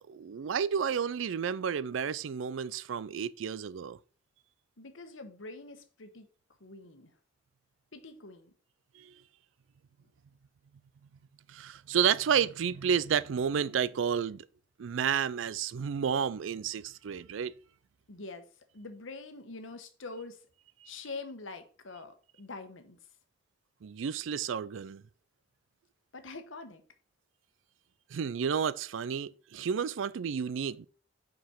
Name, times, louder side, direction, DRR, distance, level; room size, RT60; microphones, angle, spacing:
voice 1, 0.1-4.0 9.0-9.1 11.5-14.5 14.8-17.5 23.8-25.0 28.1-30.9, right 7 dB, 80° right, 0.4 m, -31 dB
voice 2, 4.8-6.3 6.6-7.1 7.9-8.5 18.1-18.5 18.7-20.5 20.8-23.0 26.1-26.8, left 3 dB, 90° left, 1.2 m, -45 dB
5.7 x 5.2 x 5.7 m
head